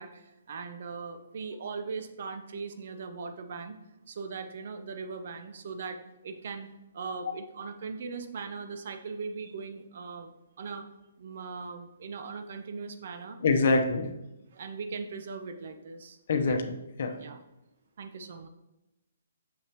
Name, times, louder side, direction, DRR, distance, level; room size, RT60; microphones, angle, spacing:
voice 1, 0.0-3.8 4.1-10.3 10.6-10.9 11.2-13.8 14.5-16.2 16.5-16.6 17.2-17.4 18.0-18.5, right 5 dB, 55° right, 7 dB, 0.7 m, -39 dB
voice 2, 13.4-14.1 16.3-17.1, left 3 dB, 60° left, 5 dB, 0.8 m, -25 dB
6.7 x 5.7 x 2.9 m, 0.94 s
figure-of-eight pair, 135°, 0 cm